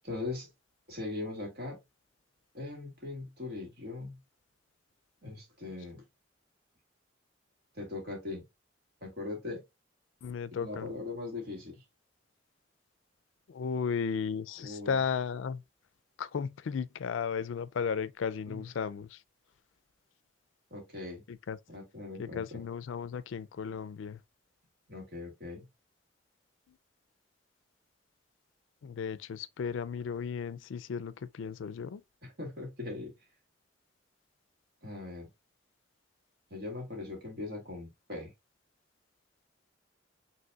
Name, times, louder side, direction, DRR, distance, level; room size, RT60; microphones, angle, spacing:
voice 1, 0.0-0.5 0.9-1.8 2.5-4.2 5.2-6.0 7.7-8.4 9.0-9.6 10.5-11.8 14.6-15.0 18.5-18.7 20.7-21.2 21.7-22.6 24.9-25.6 32.2-33.1 34.8-35.3 36.5-38.3, left 3 dB, 55° right, 2.1 m, -40 dB
voice 2, 10.2-10.9 13.5-15.6 16.2-19.2 21.3-21.6 22.2-24.2 28.8-32.0, left 6 dB, 80° left, 0.4 m, -35 dB
5.4 x 3.3 x 2.3 m
head